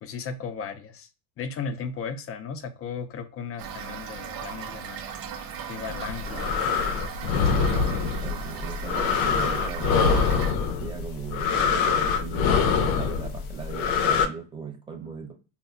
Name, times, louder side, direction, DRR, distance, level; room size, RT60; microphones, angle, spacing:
voice 1, 0.0-1.1 1.4-5.0 5.7-6.5, left 5 dB, 30° left, 8 dB, 0.4 m, -35 dB
Toilet flush / Fill (with liquid), 3.6-10.5, right 7 dB, 50° right, 0.6 m, -37 dB
sound 1, 5.9-14.3, left 6 dB, 85° left, 0.6 m, -24 dB
voice 2, 7.3-10.0 10.8-15.3, right 6 dB, 10° right, 1 dB, 0.7 m, -38 dB
2.1 x 2.1 x 3.6 m, 0.33 s
cardioid pair, 115°, 46 cm